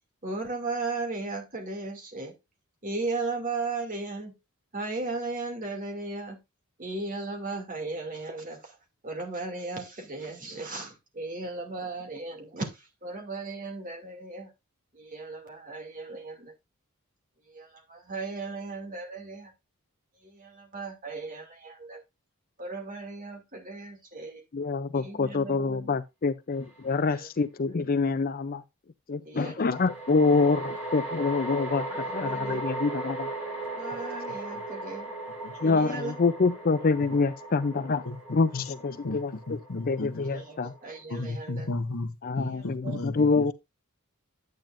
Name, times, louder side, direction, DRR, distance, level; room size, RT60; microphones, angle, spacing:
voice 1, 0.2-2.3 2.8-4.3 4.7-6.4 6.8-8.8 9.0-14.5 14.9-16.5 17.5-19.5 20.2-22.0 22.6-24.4 24.9-26.0 27.1-27.3 29.2-29.8 31.9-32.6 33.7-35.1 35.6-36.2 40.2-41.7 42.3-43.2, right 3 dB, 40° right, 2.5 m, -36 dB
voice 2, 24.5-28.6 29.1-33.3 35.6-38.0 38.3-39.6 39.9-40.7 42.2-43.5, left 4 dB, 40° left, 0.4 m, -26 dB
sound 1, 26.7-26.8 29.6-41.0, right 2 dB, 5° right, 4.8 m, -37 dB
voice 3, 39.5-40.3 41.1-43.5, left 2 dB, 70° left, 0.9 m, -34 dB
9.3 x 9.0 x 2.5 m
head